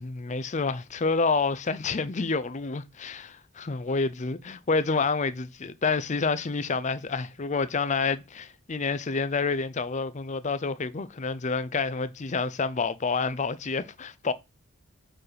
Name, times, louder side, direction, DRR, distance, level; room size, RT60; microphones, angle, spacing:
voice 1, 0.0-14.3, left 4 dB, 35° left, 0.5 m, -28 dB
5.7 x 4.7 x 4.9 m
head